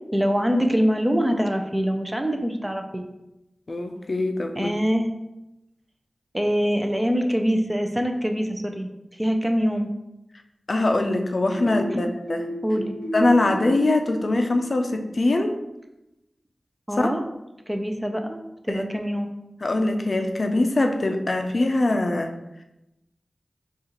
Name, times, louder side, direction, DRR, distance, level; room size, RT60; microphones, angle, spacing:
voice 1, 0.1-3.1 4.5-5.1 6.3-8.9 9.2-9.9 11.7-12.1 12.6-12.9 16.9-17.2 17.7-18.4 18.6-19.3, equal, 15° right, 4 dB, 0.5 m, -24 dB
voice 2, 3.7-4.7 10.7-12.4 13.1-15.5 17.0-17.1 18.7-18.8 19.6-22.3, left 2 dB, 55° left, 5 dB, 0.4 m, -22 dB
sound 1, 11.5-15.2, equal, 80° right, 1.1 m, -33 dB
6.4 x 2.4 x 2.9 m, 0.92 s
wide cardioid pair, 80°, 0 cm